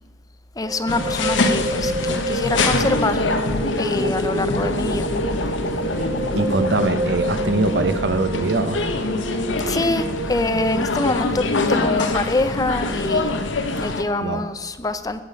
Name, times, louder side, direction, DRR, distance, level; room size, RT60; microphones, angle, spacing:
voice 1, 0.6-3.2 3.8-5.1 9.7-11.4 11.7-13.4 13.8-15.2, left 2 dB, 20° left, 11 dB, 0.5 m, -25 dB
sound 1, 0.6-10.9, right 2 dB, 30° right, 0.7 m, -29 dB
sound 2, 0.9-14.0, left 3 dB, 80° left, 0.9 m, -24 dB
sound 3, 2.5-7.0, left 3 dB, 60° left, 0.6 m, -30 dB
voice 2, 6.3-8.9 14.2-14.4, right 3 dB, 65° right, 9 dB, 0.8 m, -22 dB
15.0 x 8.4 x 5.4 m, 1.3 s
head